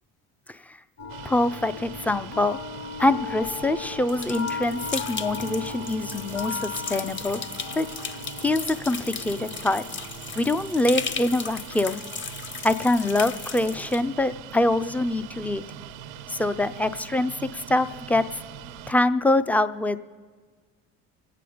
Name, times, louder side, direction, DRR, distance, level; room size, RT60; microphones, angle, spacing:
sound 1, 1.0-19.0, left 5 dB, 45° left, 2.1 m, -39 dB
sound 2, 1.1-18.9, right 13 dB, 80° right, 0.6 m, -43 dB
voice 1, 1.2-2.6 3.0-7.4 7.8-7.9 8.4-9.8 10.4-12.0 12.6-15.6 16.3-18.4 18.9-20.0, left 2 dB, 5° left, 13 dB, 0.4 m, -24 dB
sound 3, 4.1-14.0, left 6 dB, 30° left, 0.7 m, -36 dB
25.0 x 8.6 x 5.0 m, 1.6 s
supercardioid pair, 90°, 38 cm